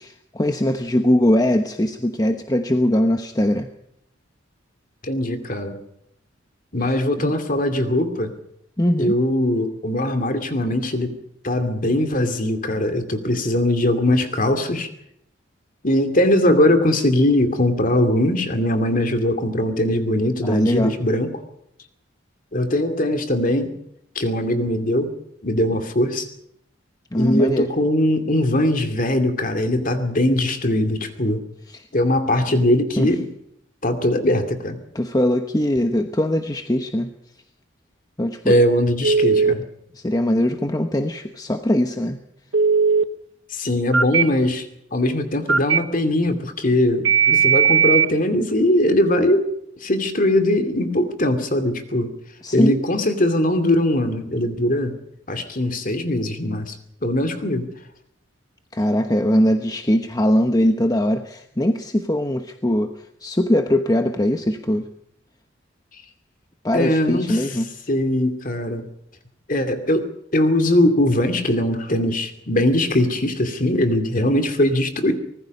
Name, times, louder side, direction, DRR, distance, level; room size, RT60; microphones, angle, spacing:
voice 1, 0.0-3.7 6.8-7.3 8.8-9.1 20.4-21.0 27.1-27.7 31.7-31.8 33.0-33.1 34.9-37.1 38.2-38.6 39.4-39.5 39.9-42.2 52.4-52.8 58.7-62.9 63.2-64.9 66.6-67.7, left 1 dB, 20° left, 6 dB, 1.0 m, -21 dB
voice 2, 5.0-5.8 6.7-8.3 9.0-11.2 11.4-14.9 15.8-21.4 22.5-23.7 24.1-25.1 25.4-26.3 27.1-31.4 31.9-33.3 33.8-34.8 38.5-39.6 43.5-44.7 44.9-49.5 49.8-52.1 52.5-54.9 55.3-56.7 57.0-57.7 66.7-67.4 67.9-68.9 69.5-70.1 70.3-75.1, left 1 dB, 45° left, 7 dB, 2.5 m, -20 dB
Telephone, 39.0-39.5 42.5-43.0 43.9-44.2 45.5-45.8 47.1-48.1, right 6 dB, 90° right, 1.2 m, -16 dB
24.5 x 19.5 x 5.4 m, 0.75 s
head